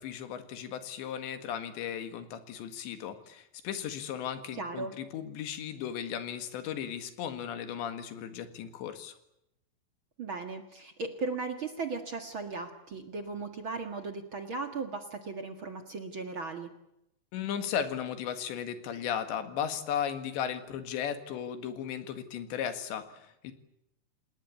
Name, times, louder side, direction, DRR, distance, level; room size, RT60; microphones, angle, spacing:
voice 1, 0.0-9.1 17.3-23.5, left 9 dB, 85° left, 9 dB, 4.1 m, -36 dB
voice 2, 4.5-4.9 10.2-16.7, right 4 dB, 50° right, 6 dB, 1.5 m, -37 dB
28.0 x 19.5 x 8.6 m, 0.83 s
omnidirectional pair, 5.0 m